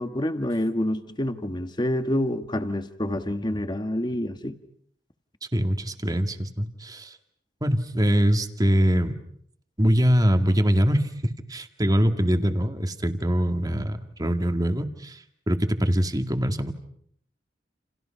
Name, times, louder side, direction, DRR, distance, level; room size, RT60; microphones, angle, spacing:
voice 1, 0.0-4.6, left 1 dB, 25° left, 1.5 m, -27 dB
voice 2, 5.5-7.2 7.6-9.1 9.8-16.7, equal, 20° right, 2.0 m, -23 dB
29.5 x 29.5 x 5.7 m
head